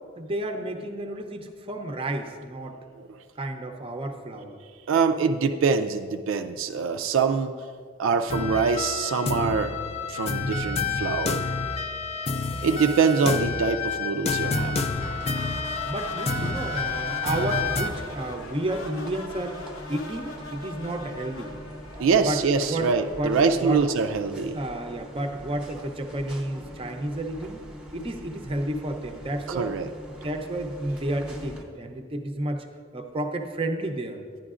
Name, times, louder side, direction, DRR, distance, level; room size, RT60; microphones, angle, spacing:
voice 1, 0.2-2.8 3.4-4.6 12.6-13.0 15.2-15.4 15.8-21.5 22.2-22.4 22.7-23.8 24.5-27.6 27.9-29.8 30.1-32.6 32.9-34.2, right 1 dB, 30° right, 5 dB, 0.6 m, -31 dB
voice 2, 4.9-7.5 8.0-9.7 10.1-11.6 12.6-14.8 22.0-24.6 29.5-29.9, right 5 dB, 75° right, 7 dB, 0.4 m, -24 dB
sound 1, 8.3-17.9, left 4 dB, 30° left, 0.4 m, -29 dB
sound 2, 14.4-22.9, left 3 dB, 85° left, 0.9 m, -41 dB
sound 3, 14.9-31.6, equal, 5° right, 0.8 m, -43 dB
11.0 x 10.0 x 2.4 m, 2.1 s
head